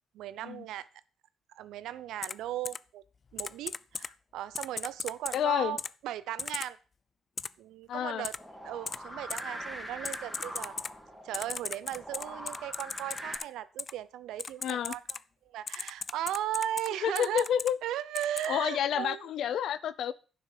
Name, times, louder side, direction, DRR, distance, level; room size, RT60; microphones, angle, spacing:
voice 1, 0.1-0.9 1.6-3.0 3.3-5.8 6.0-6.8 7.6-8.3 8.6-10.7 11.2-15.0 15.5-17.5 17.8-19.2, right 12 dB, 85° right, 0.7 m, -37 dB
Typing, 2.2-2.3 2.6-2.8 3.4-4.1 4.5-5.4 5.8-5.9 6.4-6.7 7.4-7.5 8.2-8.4 8.9-9.0 9.3-9.4 10.0-10.9 11.3-13.4 13.8-13.9 14.4-15.2 15.7-16.9 17.2-17.7 18.1-18.5, left 5 dB, 40° left, 0.4 m, -36 dB
voice 2, 5.3-5.8 7.9-8.3 14.6-14.9 17.0-17.8 18.5-20.1, left 9 dB, 75° left, 0.7 m, -29 dB
sound 1, 8.4-13.4, equal, 5° right, 3.4 m, -43 dB
11.0 x 6.4 x 6.6 m
cardioid pair, 90°, 0 cm